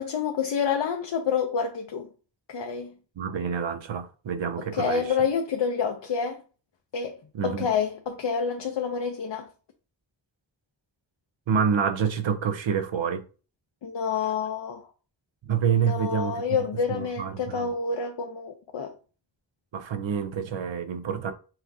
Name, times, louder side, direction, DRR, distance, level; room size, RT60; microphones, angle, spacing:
voice 1, 0.0-2.1 2.5-3.0 4.7-6.4 6.9-7.2 7.4-9.5 13.8-14.9 15.8-18.9, left 6 dB, 70° left, 0.6 m, -28 dB
voice 2, 3.2-5.1 7.3-7.7 11.5-13.2 15.4-16.4 16.9-17.7 19.7-21.3, right 7 dB, 85° right, 0.6 m, -27 dB
5.8 x 2.4 x 2.6 m
wide cardioid pair, 45°, 44 cm